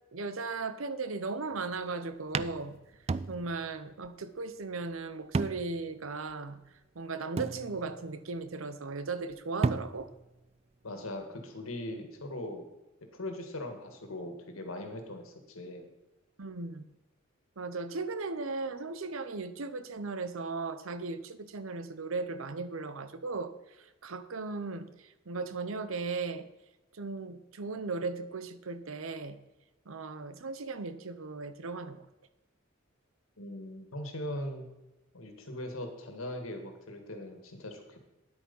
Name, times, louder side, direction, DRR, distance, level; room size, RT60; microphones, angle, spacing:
voice 1, 0.1-2.8 3.3-6.6 6.9-10.1 16.4-16.8 17.6-26.5 26.9-29.4 29.9-32.0, right 3 dB, 80° right, 13 dB, 0.8 m, -37 dB
sound 1, 1.5-1.8 2.3-3.8 4.0-4.1 5.3-5.9 6.3-6.4 7.4-8.1 9.3-9.4 9.6-10.3, right 4 dB, 30° right, 0.3 m, -33 dB
voice 2, 10.8-12.6 13.1-15.9 33.4-34.7 35.1-38.1, left 1 dB, 85° left, 5 dB, 2.0 m, -40 dB
9.9 x 8.5 x 5.4 m, 1.0 s
head